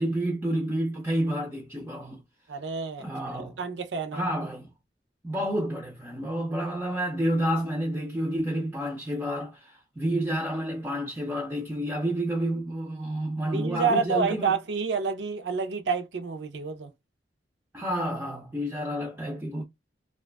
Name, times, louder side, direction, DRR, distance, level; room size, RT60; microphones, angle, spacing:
voice 1, 0.0-2.2 3.0-3.6 4.1-4.7 5.2-14.6 17.7-19.6, right 1 dB, 10° right, 0.4 m, -29 dB
voice 2, 2.5-3.1 3.4-4.3 13.5-16.9, right 5 dB, 80° right, 0.5 m, -28 dB
2.5 x 2.2 x 2.3 m
head